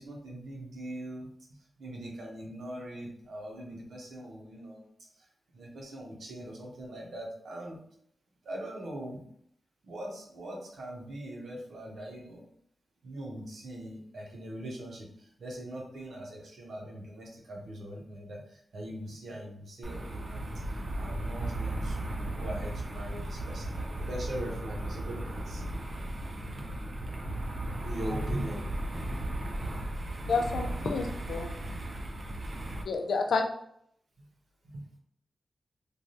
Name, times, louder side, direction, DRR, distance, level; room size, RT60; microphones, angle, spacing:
voice 1, 0.0-4.9 5.1-5.3 5.5-7.8 8.4-9.2 9.8-12.5 13.0-20.4 20.7-25.7 26.6-26.7 27.8-28.6 34.2-34.3 34.6-34.9, right 1 dB, 90° right, -1 dB, 0.8 m, -41 dB
sound 1, 19.8-32.8, right 1 dB, 45° right, 0.5 m, -36 dB
voice 2, 30.3-31.5 32.9-33.4, left 4 dB, 85° left, 3 dB, 0.4 m, -29 dB
3.2 x 2.2 x 2.6 m, 0.68 s
wide cardioid pair, 100°, 0 cm